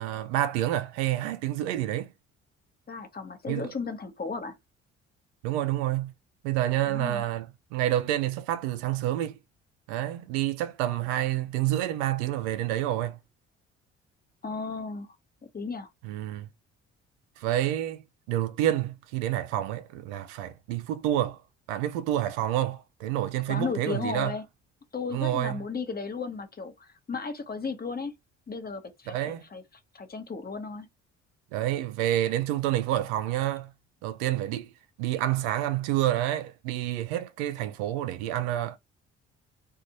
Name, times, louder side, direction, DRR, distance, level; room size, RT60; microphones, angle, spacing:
voice 1, 0.0-2.1 3.5-3.7 5.4-6.1 6.4-9.4 9.9-13.2 16.0-16.5 17.4-18.0 18.3-21.4 21.7-24.3 25.1-25.6 29.1-29.4 31.5-33.7 34.0-34.7 35.0-38.8, right 13 dB, 75° right, 0.5 m, -28 dB
voice 2, 2.9-4.6 6.9-7.2 14.4-15.1 15.5-15.9 23.5-24.4 24.9-28.1 28.5-29.6 29.9-30.9, left 4 dB, 25° left, 0.9 m, -34 dB
2.5 x 2.4 x 2.9 m
hypercardioid pair, 45°, 35 cm